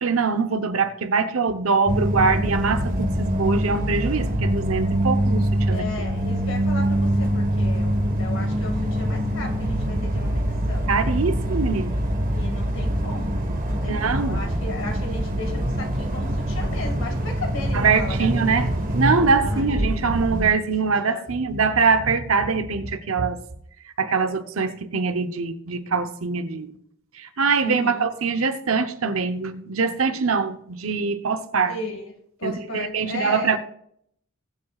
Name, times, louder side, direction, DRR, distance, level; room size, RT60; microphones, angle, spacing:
voice 1, 0.0-5.9 10.9-12.0 13.9-14.4 17.7-23.4 23.8-26.7 27.2-31.8 32.4-33.6, right 4 dB, 80° right, 0.9 m, -23 dB
sound 1, 1.9-20.5, equal, 40° right, 1.5 m, -24 dB
voice 2, 5.7-10.9 11.4-18.4 18.7-18.9 19.4-19.9 21.1-21.2 27.6-28.1 31.7-32.1 32.4-33.6, left 2 dB, 65° left, 2.2 m, -35 dB
21.0 x 7.9 x 2.5 m
head